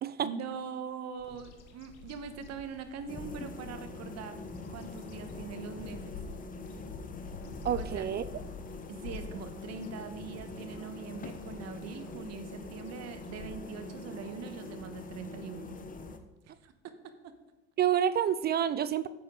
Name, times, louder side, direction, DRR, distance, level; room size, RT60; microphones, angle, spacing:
voice 1, 0.2-4.4 4.7-6.2 7.8-8.0 8.9-15.8 16.6-17.3, right 6 dB, 50° right, 9 dB, 1.2 m, -42 dB
Bird vocalization bird call bird song, 1.2-14.5, left 5 dB, 75° left, 1.2 m, -49 dB
sound 1, 3.1-16.2, left 3 dB, 25° left, 1.0 m, -44 dB
voice 2, 7.6-8.2 17.8-19.1, right 9 dB, 30° right, 15 dB, 0.4 m, -28 dB
10.5 x 7.8 x 3.8 m, 1.1 s
hypercardioid pair, 80°, 34 cm